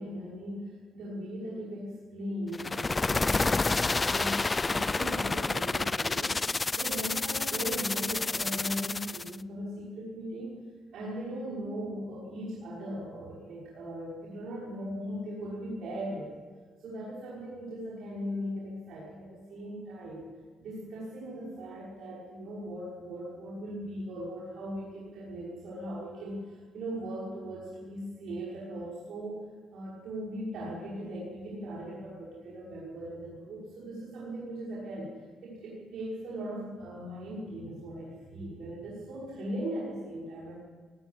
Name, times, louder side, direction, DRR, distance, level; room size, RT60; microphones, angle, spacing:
voice 1, 0.0-10.6 10.9-16.4 16.8-20.3 20.6-29.4 29.7-40.6, equal, 70° right, -6 dB, 5.9 m, -39 dB
sound 1, 2.5-9.4, left 3 dB, 25° left, 0.5 m, -29 dB
19.5 x 19.0 x 8.0 m, 1.5 s
cardioid pair, 90°, 0 cm